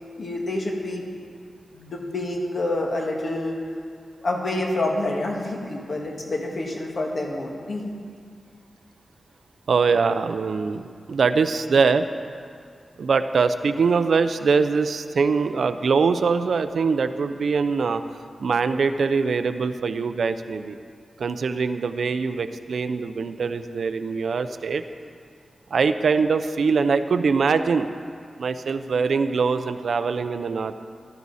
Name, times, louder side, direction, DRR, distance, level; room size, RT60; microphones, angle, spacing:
voice 1, 0.2-1.0 1.7-3.6 4.2-7.9, left 2 dB, 50° left, 0 dB, 1.8 m, -27 dB
voice 2, 9.7-12.1 13.0-18.0 18.4-20.8 21.2-24.8 25.7-27.9 28.4-30.7, right 5 dB, 70° right, 10 dB, 0.5 m, -23 dB
16.0 x 12.5 x 4.1 m, 2.3 s
wide cardioid pair, 170°, 0 cm